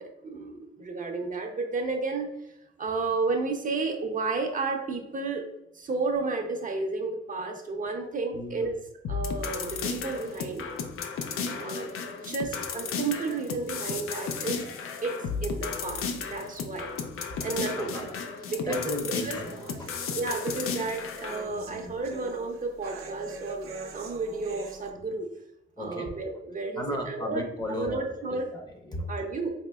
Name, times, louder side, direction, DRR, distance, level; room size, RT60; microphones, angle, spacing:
voice 1, 0.0-2.3 2.8-5.4 5.7-8.8 9.1-10.7 11.5-11.9 12.2-14.6 15.0-16.9 17.4-18.1 18.5-18.9 19.2-19.4 20.2-25.3 25.8-27.4 27.7-28.4 29.1-29.5, right 3 dB, 40° right, 2 dB, 0.5 m, -32 dB
voice 2, 8.3-8.7 17.8-19.5 19.8-20.0 21.5-21.9 25.8-26.1 26.8-28.0 28.5-29.1, left 1 dB, 20° left, 2 dB, 0.6 m, -36 dB
sound 1, 9.0-21.4, left 5 dB, 90° left, 0.4 m, -34 dB
sound 2, 18.5-24.9, right 4 dB, 90° right, 0.6 m, -44 dB
4.3 x 2.8 x 2.2 m, 0.84 s
cardioid pair, 110°, 21 cm